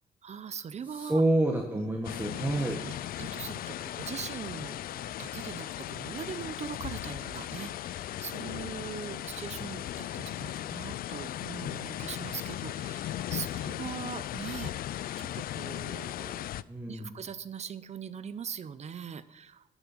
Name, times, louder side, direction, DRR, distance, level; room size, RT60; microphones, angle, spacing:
voice 1, 0.2-1.2 2.9-14.7 15.2-16.5 16.9-19.6, right 7 dB, 45° right, 15 dB, 0.6 m, -41 dB
voice 2, 0.9-2.8 16.7-17.1, right 1 dB, 15° right, 1 dB, 1.3 m, -28 dB
sound 1, 2.0-16.6, left 12 dB, 75° left, 0.4 m, -37 dB
12.0 x 8.0 x 7.3 m, 0.94 s
cardioid pair, 115°, 15 cm